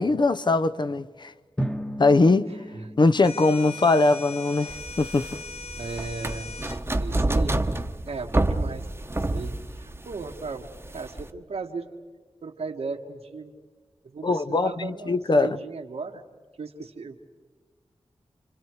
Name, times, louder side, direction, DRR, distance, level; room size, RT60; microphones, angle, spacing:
voice 1, 0.0-1.3 2.0-2.5 3.0-5.3 14.2-15.6, left 3 dB, 50° left, 0.7 m, -21 dB
Drum, 1.6-4.3, equal, 10° left, 1.2 m, -35 dB
sound 1, 3.2-6.8, left 4 dB, 80° left, 1.0 m, -39 dB
sound 2, 4.7-11.3, right 2 dB, 25° right, 1.0 m, -28 dB
voice 2, 5.7-6.5 7.0-7.6 8.0-9.1 9.3-11.9 12.4-13.5 14.0-16.2 16.6-17.2, right 4 dB, 90° right, 1.7 m, -36 dB
29.5 x 25.0 x 4.7 m
wide cardioid pair, 70°, 10 cm